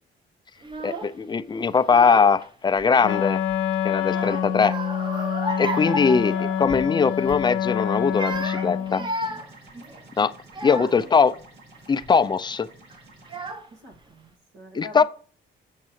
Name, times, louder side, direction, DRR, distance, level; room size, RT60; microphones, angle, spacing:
Child speech kid speaking / Crying sobbing, 0.6-1.2 1.8-2.5 2.8-3.6 4.1-6.9 7.2-7.5 8.0-11.1 11.8-12.1 12.9-13.0 13.3-14.0, right 1 dB, 25° right, 0.9 m, -34 dB
voice 1, 0.8-3.4 3.8-4.7 5.6-9.0 10.2-10.3 10.6-11.4 11.9-12.7 14.7-15.0, left 5 dB, 20° left, 0.4 m, -21 dB
Wind instrument woodwind instrument, 3.0-9.1, left 9 dB, 80° left, 0.7 m, -26 dB
sound 1, 9.1-13.5, right 2 dB, 55° right, 2.9 m, -50 dB
voice 2, 10.7-11.4 13.7-15.0, left 1 dB, 80° right, 2.2 m, -45 dB
7.2 x 6.6 x 3.1 m
cardioid pair, 90°, 20 cm